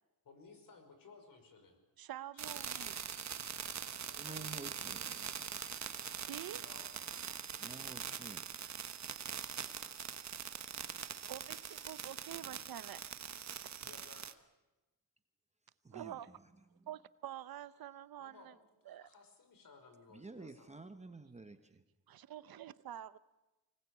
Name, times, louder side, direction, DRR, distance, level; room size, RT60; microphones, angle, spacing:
voice 1, 0.2-1.8 2.3-2.6 4.0-5.1 6.6-7.7 13.8-14.4 18.2-20.7, left 4 dB, 60° left, 6 dB, 5.5 m, -60 dB
voice 2, 2.0-3.0 6.2-6.6 11.3-13.0 15.9-16.3 16.9-18.5 18.9-19.1 22.1-23.2, right 11 dB, 70° right, 15 dB, 0.8 m, -47 dB
sound 1, 2.4-14.3, right 8 dB, 45° right, 1.1 m, -43 dB
voice 3, 2.6-4.8, left 2 dB, 45° left, 6 dB, 5.9 m, -68 dB
voice 4, 4.2-5.4 7.6-8.5 12.4-12.5 15.8-16.4 16.8-16.9 20.1-21.8, right 3 dB, 20° right, 8 dB, 1.2 m, -51 dB
24.5 x 19.0 x 8.5 m, 1.1 s
cardioid pair, 120°, 37 cm